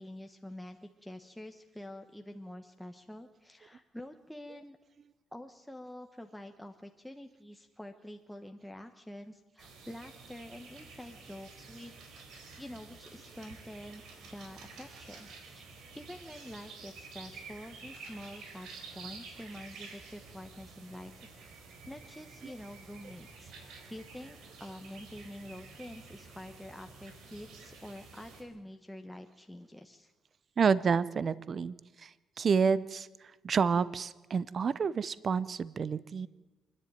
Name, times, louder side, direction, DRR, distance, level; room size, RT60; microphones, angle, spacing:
voice 1, 0.0-4.8 5.3-11.9 12.6-15.6 15.9-21.6 21.9-23.5 23.9-30.1, left 1 dB, 5° left, 4 dB, 1.2 m, -47 dB
sound 1, 9.6-28.4, right 4 dB, 85° right, 4.0 m, -50 dB
voice 2, 30.6-36.3, right 6 dB, 45° right, 19 dB, 0.6 m, -29 dB
26.5 x 10.5 x 9.1 m, 1.2 s
cardioid pair, 90°, 0 cm